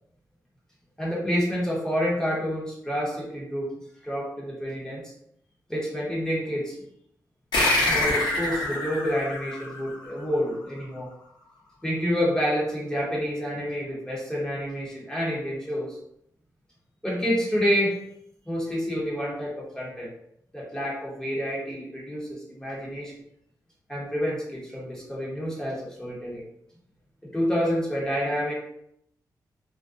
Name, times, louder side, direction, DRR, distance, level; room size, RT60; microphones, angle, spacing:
voice 1, 1.0-3.7 4.0-5.0 5.7-6.8 7.8-11.1 11.8-16.0 17.0-18.0 18.5-20.1 20.5-23.1 23.9-26.4 27.2-28.5, equal, 10° left, -5 dB, 0.9 m, -28 dB
sound 1, 7.5-10.5, left 1 dB, 80° left, 0.8 m, -26 dB
2.4 x 2.2 x 2.5 m, 0.73 s
cardioid pair, 90°, 7 cm